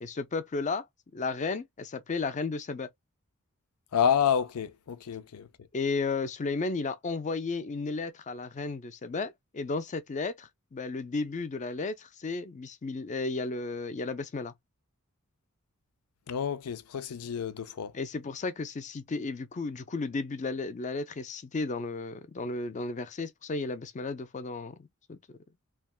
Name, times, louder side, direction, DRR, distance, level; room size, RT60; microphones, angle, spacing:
voice 1, 0.0-0.8 1.1-2.9 5.7-14.5 17.9-25.2, left 3 dB, 35° left, 0.4 m, -34 dB
voice 2, 3.9-5.5 16.3-17.9, left 8 dB, 85° left, 0.5 m, -29 dB
3.3 x 2.2 x 2.3 m
head